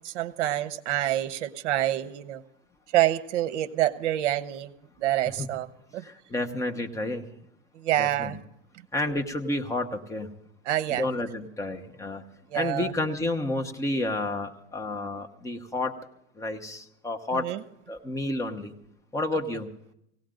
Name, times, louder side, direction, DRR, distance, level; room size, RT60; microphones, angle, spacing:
voice 1, 0.0-2.4 2.9-4.7 5.0-5.7 5.9-6.0 7.7-8.4 10.7-11.1 12.5-12.9 17.3-17.6, right 13 dB, 65° right, 14 dB, 1.1 m, -27 dB
voice 2, 6.0-7.3 8.0-8.4 8.9-10.3 10.9-12.3 12.5-15.9 16.4-17.5 17.9-18.7 19.1-19.7, left 2 dB, 10° left, 4 dB, 1.0 m, -30 dB
18.5 x 17.0 x 3.9 m, 0.77 s
supercardioid pair, 140°, 37 cm